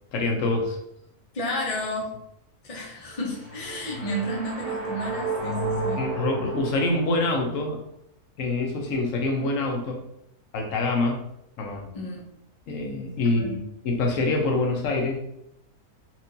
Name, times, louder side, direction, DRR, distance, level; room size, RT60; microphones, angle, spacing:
voice 1, 0.1-0.8 6.0-7.8 8.4-10.0 10.5-11.2 11.6-11.9 12.7-15.2, left 2 dB, 60° left, 1 dB, 1.0 m, -25 dB
voice 2, 1.3-2.1 2.6-6.1 11.9-12.2 13.3-13.6, equal, 30° left, -3 dB, 0.7 m, -32 dB
sound 1, 3.1-7.5, right 3 dB, 35° right, 0.7 m, -32 dB
4.4 x 2.5 x 2.7 m, 0.77 s
omnidirectional pair, 1.6 m